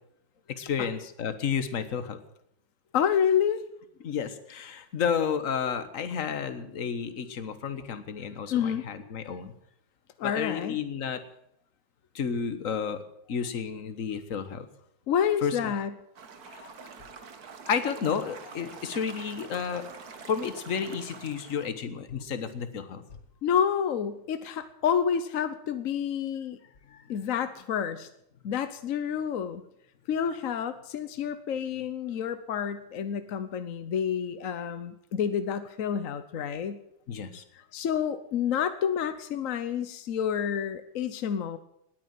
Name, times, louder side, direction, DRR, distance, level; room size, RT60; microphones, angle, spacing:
voice 1, 0.5-2.2 4.0-9.5 10.2-11.2 12.1-13.0 13.3-14.6 15.4-15.7 16.5-16.7 17.7-19.9 20.3-23.0 26.9-27.0 37.1-37.4, left 7 dB, 45° left, 10 dB, 1.5 m, -31 dB
voice 2, 2.9-3.7 8.5-8.8 10.2-10.8 15.1-15.9 23.4-26.6 27.1-28.1 28.4-29.6 30.1-36.8 37.5-41.6, left 8 dB, 60° left, 11 dB, 0.9 m, -29 dB
sound 1, 16.1-21.7, right 5 dB, 50° right, 1.7 m, -46 dB
19.5 x 9.5 x 7.6 m, 0.76 s
omnidirectional pair, 2.3 m